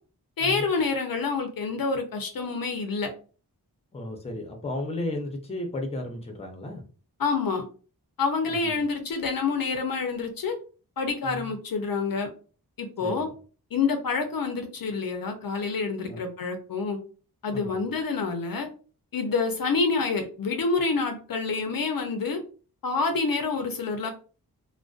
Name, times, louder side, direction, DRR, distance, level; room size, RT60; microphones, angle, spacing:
voice 1, 0.4-3.1 7.2-7.7 8.2-10.6 11.0-12.3 12.8-13.3 13.7-17.0 17.4-18.7 19.1-22.4 22.8-24.1, left 4 dB, 60° left, 5 dB, 0.5 m, -27 dB
voice 2, 3.9-6.8 8.5-8.8 11.2-11.5 13.0-13.3 16.1-16.2 17.5-17.8, left 1 dB, 15° left, 3 dB, 0.5 m, -34 dB
2.5 x 2.1 x 2.3 m, 0.38 s
wide cardioid pair, 100°, 39 cm